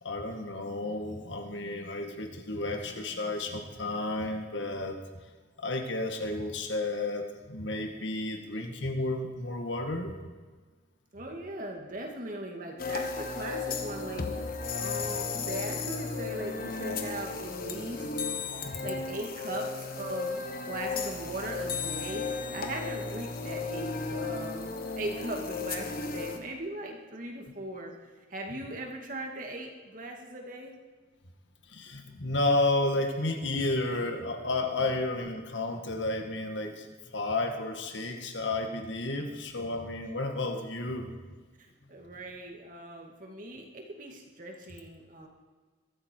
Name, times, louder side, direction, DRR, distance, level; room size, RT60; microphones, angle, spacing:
voice 1, 0.0-5.0 5.6-10.1 18.6-19.0 31.7-36.9 37.1-41.1, left 2 dB, 70° left, 4 dB, 1.9 m, -32 dB
voice 2, 11.1-14.3 14.8-18.1 18.8-27.9 28.3-30.8 34.8-34.9 41.6-45.3, right 1 dB, 45° right, 1 dB, 2.3 m, -39 dB
sound 1, 12.8-26.4, left 4 dB, 50° left, 1.3 m, -34 dB
22.5 x 13.0 x 4.7 m, 1.4 s
head